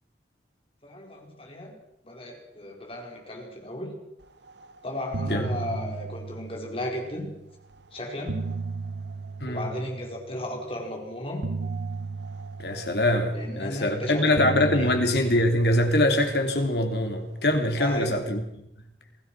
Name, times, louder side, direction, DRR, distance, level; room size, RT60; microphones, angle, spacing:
voice 1, 0.8-1.7 2.0-3.9 4.8-7.3 7.9-8.5 9.5-11.4 13.3-14.9 17.8-18.2, left 1 dB, 30° left, 1 dB, 4.9 m, -35 dB
sound 1, 4.5-4.7 5.0-7.3 8.0-10.4 11.4-13.9 14.4-16.9, right 4 dB, 80° right, 1.1 m, -35 dB
voice 2, 12.6-18.4, left 1 dB, 65° left, 5 dB, 3.2 m, -23 dB
27.5 x 17.5 x 6.2 m, 0.84 s
head